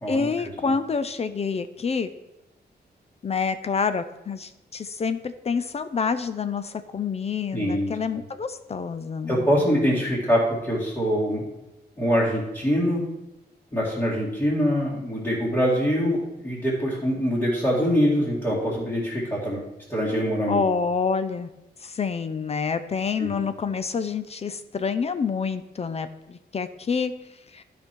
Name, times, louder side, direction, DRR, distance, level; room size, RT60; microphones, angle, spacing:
voice 1, 0.1-2.1 3.2-9.6 20.5-21.5 21.8-27.1 27.5-27.6, left 5 dB, 35° left, 11 dB, 0.5 m, -27 dB
voice 2, 7.5-7.9 9.3-11.4 12.0-13.0 13.7-19.6 19.9-20.6 23.2-23.3, equal, 15° left, -8 dB, 2.3 m, -24 dB
12.5 x 5.2 x 4.5 m, 0.95 s
wide cardioid pair, 150°, 17 cm